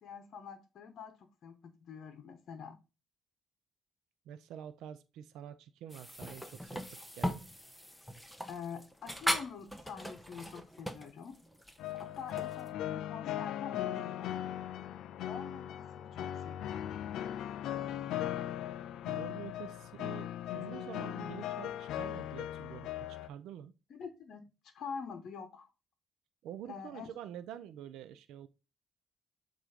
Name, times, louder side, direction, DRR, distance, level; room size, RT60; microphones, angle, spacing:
voice 1, 0.0-2.8 8.5-11.3 12.0-14.3 15.3-17.1 23.9-24.5 24.7-25.7 26.6-27.1, left 6 dB, 65° left, 0.9 m, -46 dB
voice 2, 4.3-7.4 19.1-23.7 26.4-28.5, right 10 dB, 90° right, 0.5 m, -47 dB
sound 1, 5.9-12.7, equal, ahead, 0.9 m, -39 dB
sound 2, 11.8-23.3, left 12 dB, 85° left, 0.4 m, -38 dB
7.5 x 2.6 x 5.0 m
cardioid pair, 90°, 0 cm